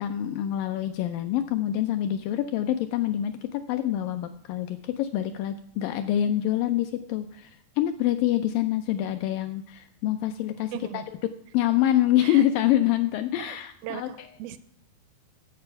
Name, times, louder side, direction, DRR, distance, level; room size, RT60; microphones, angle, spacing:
voice 1, 0.0-11.0 11.5-14.3, left 12 dB, 80° left, 8 dB, 2.0 m, -26 dB
voice 2, 10.7-11.1 12.2-12.5 13.4-13.6 13.8-14.6, right 12 dB, 80° right, 14 dB, 2.2 m, -38 dB
10.0 x 7.9 x 5.7 m, 0.71 s
omnidirectional pair, 4.4 m